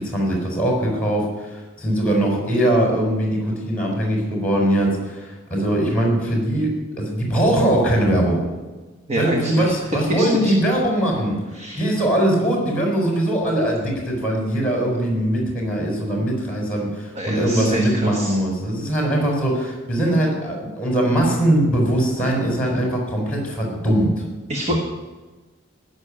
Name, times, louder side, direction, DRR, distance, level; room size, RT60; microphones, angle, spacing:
voice 1, 0.0-6.7 7.0-8.4 9.1-11.3 11.8-24.1 24.7-24.8, right 1 dB, 5° left, 0 dB, 4.3 m, -21 dB
voice 2, 9.1-9.7 10.1-10.5 11.5-11.8 17.1-18.4 24.5-24.8, equal, 30° right, 1 dB, 1.4 m, -26 dB
15.0 x 6.3 x 9.8 m, 1.3 s
head